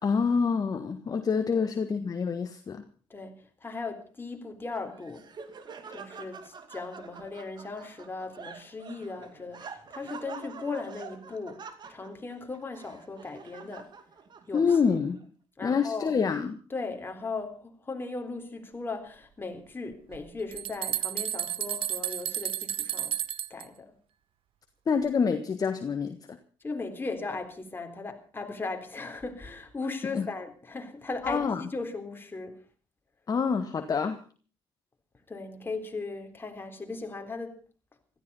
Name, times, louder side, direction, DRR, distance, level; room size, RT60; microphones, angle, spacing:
voice 1, 0.0-2.8 14.5-15.3 15.6-16.6 24.9-26.4 30.1-30.3 31.2-31.6 33.3-34.2, left 5 dB, 40° left, 1.5 m, -27 dB
voice 2, 3.6-5.2 5.9-11.6 11.9-13.9 14.5-14.8 15.6-16.1 16.7-23.2 23.5-23.9 26.6-32.6 35.3-37.5, left 3 dB, 20° left, 3.7 m, -37 dB
Laughter, 4.7-15.2, right 5 dB, 45° right, 2.3 m, -46 dB
sound 1, 20.1-23.6, right 11 dB, 65° right, 0.9 m, -32 dB
16.0 x 14.0 x 5.5 m
supercardioid pair, 80°, 10 cm